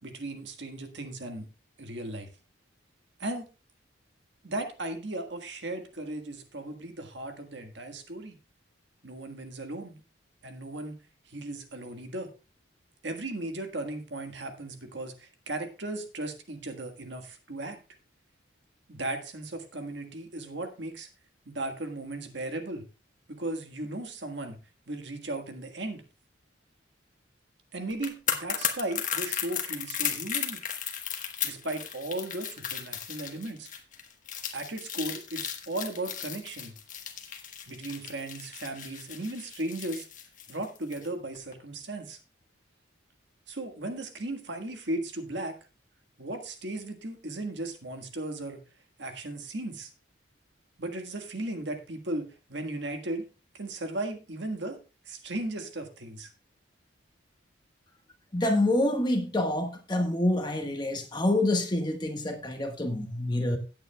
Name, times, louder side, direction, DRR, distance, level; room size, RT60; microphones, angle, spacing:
voice 1, 0.0-1.5 1.8-2.3 3.2-3.5 4.4-8.4 9.0-10.0 10.4-11.0 11.3-12.3 13.0-17.8 18.9-21.1 21.4-22.8 23.3-24.6 24.9-26.0 27.7-30.6 31.4-33.7 34.5-36.7 37.7-40.1 40.5-42.2 43.5-45.6 46.2-48.6 49.0-49.9 50.8-53.2 53.5-54.8 55.0-56.3, right 2 dB, 65° right, 1.6 m, -36 dB
sound 1, 27.9-41.1 41.3-41.5, left 9 dB, 40° left, 1.3 m, -35 dB
voice 2, 58.3-63.6, left 1 dB, 20° left, 1.3 m, -27 dB
17.0 x 8.6 x 2.3 m
head